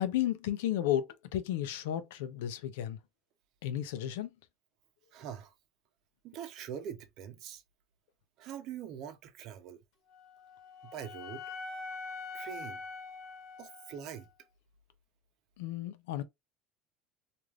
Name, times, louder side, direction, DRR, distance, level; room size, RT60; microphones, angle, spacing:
voice 1, 0.0-3.0 3.6-4.3 15.6-16.2, left 12 dB, 90° left, 0.5 m, -33 dB
voice 2, 5.1-5.5 6.2-7.6 8.4-9.8 10.9-11.4 12.3-12.8 13.6-14.3, right 9 dB, 55° right, 0.7 m, -43 dB
Wind instrument woodwind instrument, 10.1-14.3, left 4 dB, 60° left, 1.4 m, -44 dB
3.2 x 2.5 x 2.4 m
supercardioid pair, 130°, 0 cm